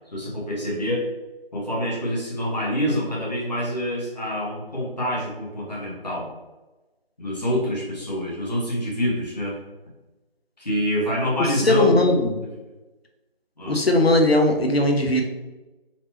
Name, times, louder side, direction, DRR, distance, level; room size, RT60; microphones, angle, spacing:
voice 1, 0.1-1.1 1.5-6.3 7.2-9.6 10.6-12.1 13.6-13.8, equal, 45° left, -5 dB, 1.4 m, -26 dB
voice 2, 11.6-12.3 13.7-15.2, left 1 dB, 75° left, 3 dB, 0.9 m, -18 dB
4.4 x 3.0 x 2.8 m, 1.1 s
figure-of-eight pair, 170°, 30 cm